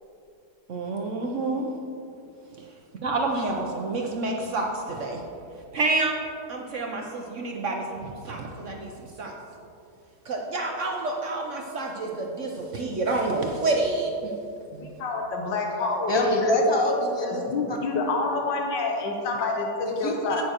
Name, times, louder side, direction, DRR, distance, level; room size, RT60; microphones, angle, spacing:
voice 1, 0.7-1.7 2.6-2.7 3.0-5.2 5.7-6.2 6.5-9.4 10.3-14.3 14.7-14.9, right 2 dB, 60° right, 1 dB, 0.8 m, -28 dB
voice 2, 14.8-16.2 17.2-19.6 20.0-20.4, left 3 dB, 85° left, 1 dB, 1.6 m, -28 dB
voice 3, 16.1-17.8 19.8-20.4, left 1 dB, 20° left, 0 dB, 0.7 m, -24 dB
11.0 x 8.9 x 2.9 m, 2.6 s
omnidirectional pair, 1.9 m